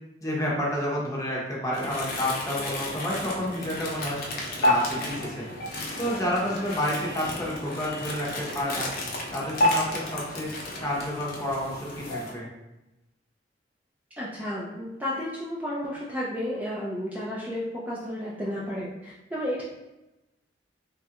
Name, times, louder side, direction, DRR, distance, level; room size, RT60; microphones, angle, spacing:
voice 1, 0.2-4.2 4.6-5.5 6.0-8.9 9.3-10.5 10.8-12.5, left 1 dB, 20° left, -4 dB, 0.7 m, -30 dB
sound 1, 1.7-12.3, left 1 dB, 55° left, 0.6 m, -31 dB
voice 2, 14.2-19.6, equal, 10° right, -7 dB, 0.4 m, -32 dB
3.1 x 2.3 x 2.8 m, 0.99 s
head